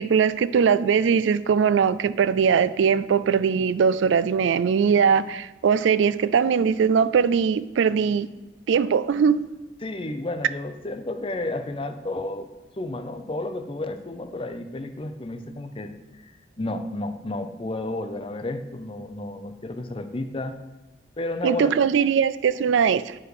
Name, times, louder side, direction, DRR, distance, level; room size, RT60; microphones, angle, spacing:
voice 1, 0.0-8.3 8.7-9.4 21.4-23.2, right 6 dB, 80° right, 16 dB, 0.3 m, -21 dB
voice 2, 9.8-12.5 12.7-15.9 16.2-20.6 21.2-22.1, left 2 dB, 30° left, 8 dB, 0.6 m, -32 dB
9.4 x 5.0 x 4.9 m, 1.1 s
head